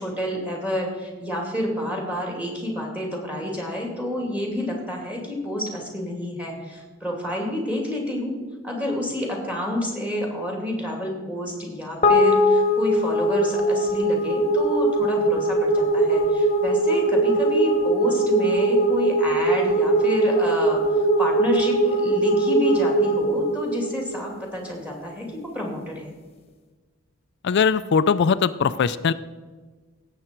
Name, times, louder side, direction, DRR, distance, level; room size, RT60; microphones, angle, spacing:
voice 1, 0.0-8.3 8.6-26.2, left 1 dB, 5° right, 0 dB, 2.7 m, -29 dB
sound 1, 12.0-24.5, right 1 dB, 30° left, 1.2 m, -21 dB
voice 2, 27.4-29.1, left 6 dB, 55° left, 15 dB, 0.4 m, -20 dB
17.0 x 7.7 x 4.5 m, 1.4 s
head